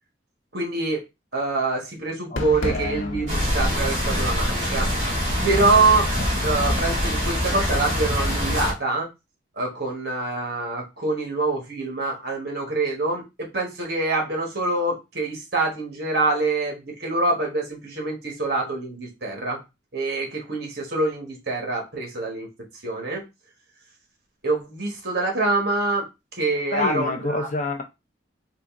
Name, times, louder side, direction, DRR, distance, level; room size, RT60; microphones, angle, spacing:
voice 1, 0.5-1.0 1.3-4.9 5.4-6.1 6.4-9.1 9.6-19.6 19.9-22.5 22.8-23.2 24.4-26.1 26.4-27.5, right 3 dB, 55° right, 1.3 m, -25 dB
voice 2, 2.3-3.2 26.7-27.8, left 2 dB, 40° left, 0.6 m, -28 dB
Fireworks, 2.4-7.4, left 1 dB, 80° left, 0.8 m, -35 dB
sound 1, 3.3-8.7, equal, 35° right, 1.7 m, -24 dB
3.8 x 2.4 x 3.5 m
head